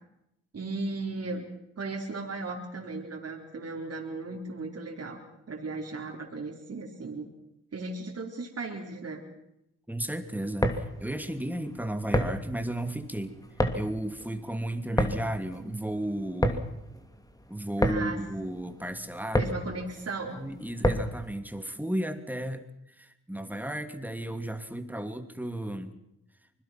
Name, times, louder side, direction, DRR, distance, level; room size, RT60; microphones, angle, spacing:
voice 1, 0.5-1.4 1.8-5.2 5.5-7.3 7.7-9.2 17.8-18.2 19.4-20.5, right 3 dB, 45° right, 0 dB, 4.3 m, -36 dB
voice 2, 9.9-13.3 13.7-16.7 17.5-19.5 20.3-25.9, right 1 dB, 5° right, 8 dB, 2.7 m, -34 dB
sound 1, 10.4-21.3, equal, 10° left, 2.8 m, -30 dB
25.0 x 21.5 x 6.0 m, 0.84 s
supercardioid pair, 55°, 34 cm